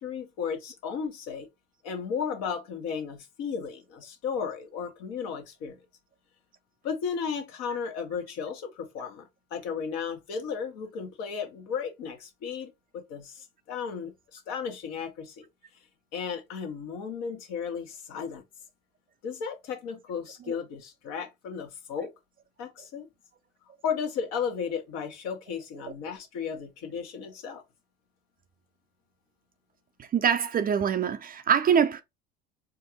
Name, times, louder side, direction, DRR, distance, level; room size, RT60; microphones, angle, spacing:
voice 1, 0.0-1.5 1.8-5.8 6.8-15.4 16.1-18.4 19.2-22.1 22.6-23.1 23.8-27.6, left 6 dB, 60° left, 1.4 m, -34 dB
voice 2, 30.0-32.0, right 7 dB, 30° right, 0.6 m, -24 dB
4.5 x 2.5 x 3.0 m
hypercardioid pair, 70°, 29 cm